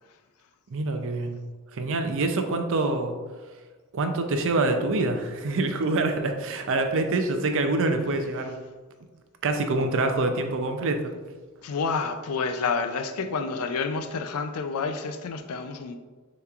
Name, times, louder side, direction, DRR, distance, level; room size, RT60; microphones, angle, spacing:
voice 1, 0.7-1.4 1.7-3.2 3.9-8.6 9.4-11.1, right 2 dB, 65° right, 6 dB, 0.5 m, -25 dB
voice 2, 11.6-16.0, left 4 dB, 80° left, 7 dB, 0.4 m, -29 dB
6.7 x 3.0 x 2.4 m, 1.3 s
head